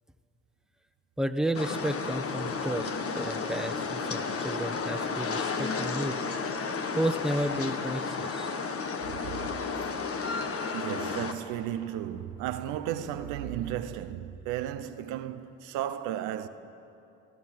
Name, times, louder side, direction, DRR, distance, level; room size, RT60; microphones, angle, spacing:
voice 1, 1.2-6.2 6.9-8.6, right 1 dB, ahead, 1.4 m, -32 dB
sound 1, 1.5-11.3, left 4 dB, 50° left, 1.7 m, -32 dB
voice 2, 10.7-16.5, right 11 dB, 85° right, 0.9 m, -34 dB
25.5 x 14.5 x 7.8 m
supercardioid pair, 60°, 30 cm